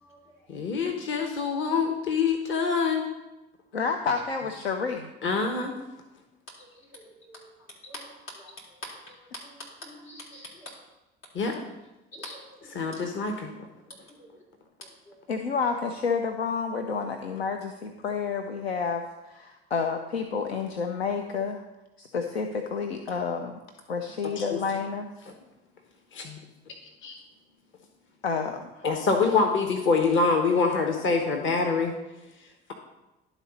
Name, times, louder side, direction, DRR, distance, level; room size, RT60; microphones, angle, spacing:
voice 1, 0.5-3.0 5.2-5.7 11.3-11.5 12.7-13.5 24.5-24.6 26.1-26.4 27.0-27.2 28.8-31.9, left 4 dB, 40° left, 4 dB, 1.1 m, -25 dB
voice 2, 3.7-5.1 10.3-10.4 15.3-21.6 22.0-23.6 23.9-25.1 28.2-28.9, left 5 dB, 90° left, 5 dB, 0.5 m, -30 dB
voice 3, 8.4-9.2 9.4-10.7 12.1-12.8 14.2-14.3 15.1-15.2, left 1 dB, 75° left, -5 dB, 3.3 m, -44 dB
11.5 x 4.0 x 5.3 m, 1.0 s
figure-of-eight pair, 55°, 30 cm